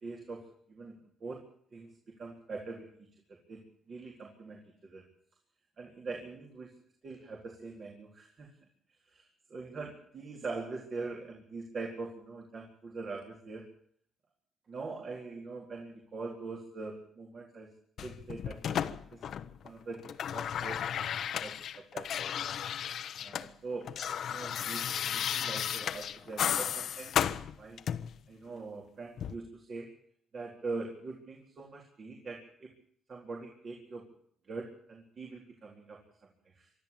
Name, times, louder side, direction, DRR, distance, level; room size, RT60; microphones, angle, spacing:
voice 1, 0.0-1.4 1.7-2.9 3.3-5.0 5.8-6.7 7.0-8.6 9.1-13.7 14.7-17.7 18.0-18.8 19.1-19.2 19.6-20.0 20.3-21.1 21.4-22.3 23.2-23.9 24.2-27.2 27.6-27.8 28.3-29.9 30.3-32.7 33.1-34.0 34.4-36.0 36.5-36.7, right 3 dB, 50° right, 0 dB, 4.1 m, -43 dB
sound 1, 18.0-19.7 19.9-23.5 23.7-28.2 29.2-29.3, left 9 dB, 65° left, 1.0 m, -34 dB
24.0 x 13.0 x 8.9 m, 0.64 s
cardioid pair, 90°, 0 cm